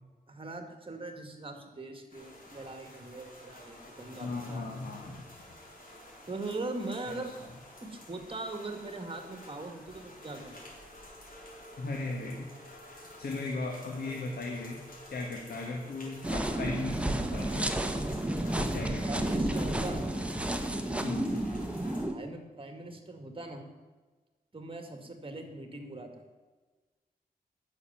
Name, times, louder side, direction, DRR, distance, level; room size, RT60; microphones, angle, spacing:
voice 1, 0.3-4.9 6.3-7.3 7.8-10.6 18.9-20.0 22.1-23.6 24.5-26.1, right 2 dB, 35° right, 5 dB, 2.1 m, -41 dB
sound 1, 2.1-22.0, left 1 dB, 60° left, 4.1 m, -50 dB
voice 2, 4.2-5.2 7.1-7.2 11.8-12.5 13.2-14.8 15.1-17.7 18.6-19.3 21.0-21.4, left 3 dB, 80° left, 0 dB, 1.7 m, -37 dB
sound 2, 16.2-22.1, right 1 dB, 5° right, 1.1 m, -31 dB
11.5 x 7.0 x 9.3 m, 1.3 s
wide cardioid pair, 90°, 16 cm